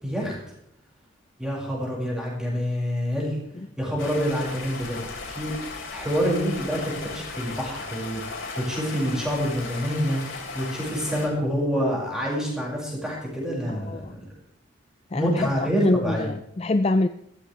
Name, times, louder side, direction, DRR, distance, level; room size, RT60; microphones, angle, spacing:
voice 1, 0.0-0.4 1.4-3.4 3.8-14.2 15.1-16.3, equal, 5° right, -4 dB, 5.6 m, -27 dB
Stream, 4.0-11.3, left 4 dB, 80° left, 4.2 m, -36 dB
voice 2, 13.7-14.1 15.1-17.1, left 2 dB, 30° left, 10 dB, 0.4 m, -25 dB
14.5 x 14.5 x 3.3 m, 0.77 s
head